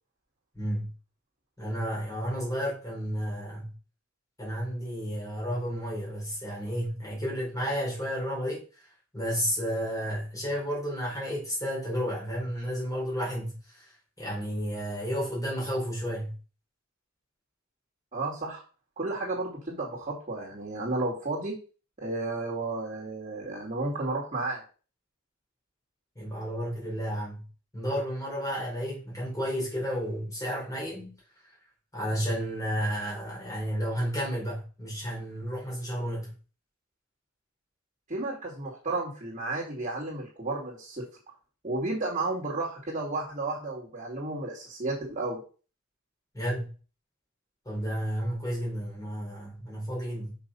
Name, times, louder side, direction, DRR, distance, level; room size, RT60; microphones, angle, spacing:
voice 1, 0.5-0.9 1.6-3.7 4.4-16.4 26.2-27.5 27.7-31.1 31.9-36.4 46.3-46.7 47.6-50.4, equal, 15° left, 4.2 m, -32 dB
voice 2, 18.1-18.6 19.0-21.5 22.0-24.6 38.1-41.0 41.6-45.4, right 2 dB, 35° right, 2.6 m, -32 dB
6.1 x 5.9 x 5.6 m
head